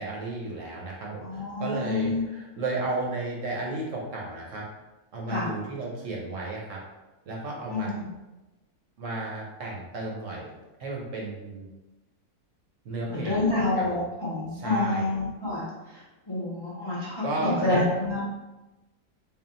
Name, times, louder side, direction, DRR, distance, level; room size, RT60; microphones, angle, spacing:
voice 1, 0.0-4.7 5.1-6.8 7.3-7.9 9.0-10.5 10.8-11.7 12.8-13.5 13.8-14.0 14.5-15.1 17.2-17.8, right 2 dB, 65° right, -3 dB, 1.1 m, -33 dB
voice 2, 1.2-2.2 5.3-5.5 7.7-8.1 13.1-15.6 16.3-18.2, left 2 dB, 25° left, -8 dB, 0.6 m, -28 dB
3.6 x 2.4 x 3.8 m, 1.1 s
omnidirectional pair, 1.6 m